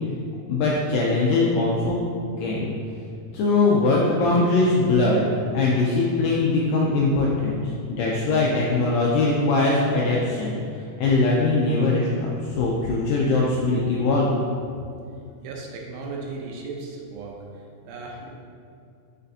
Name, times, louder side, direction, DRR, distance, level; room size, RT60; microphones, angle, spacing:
voice 1, 0.5-2.0 2.4-2.7 3.3-5.2 5.5-10.5 11.0-14.4, left 3 dB, 85° left, -4 dB, 1.9 m, -21 dB
voice 2, 15.4-17.4 17.8-18.3, right 3 dB, 80° right, 0 dB, 2.4 m, -36 dB
6.5 x 6.0 x 2.7 m, 2.4 s
omnidirectional pair, 4.6 m